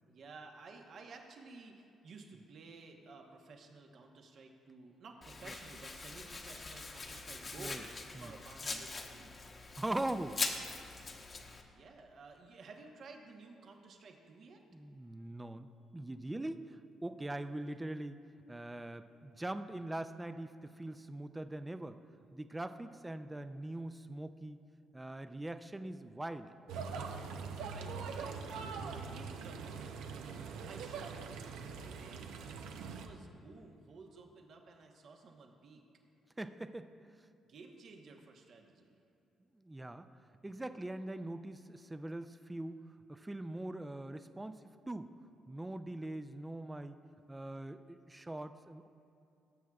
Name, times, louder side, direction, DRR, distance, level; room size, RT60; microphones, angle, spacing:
voice 1, 0.1-7.8 8.2-9.4 11.7-14.6 27.7-30.0 30.7-35.8 37.5-39.0, right 4 dB, 60° right, 3 dB, 1.0 m, -54 dB
Domestic sounds home sounds, 5.2-11.6, left 3 dB, 40° left, 0.9 m, -42 dB
voice 2, 9.8-10.4 14.7-18.2 18.5-22.0 22.3-24.6 24.9-26.5 36.4-36.9 39.6-40.1 40.4-42.8 43.1-45.1 45.5-47.0 47.3-48.9, right 1 dB, 15° right, 10 dB, 0.4 m, -42 dB
sound 1, 26.7-33.1, right 5 dB, 90° right, 0.6 m, -43 dB
19.0 x 7.4 x 2.4 m, 2.6 s
cardioid pair, 85°, 0 cm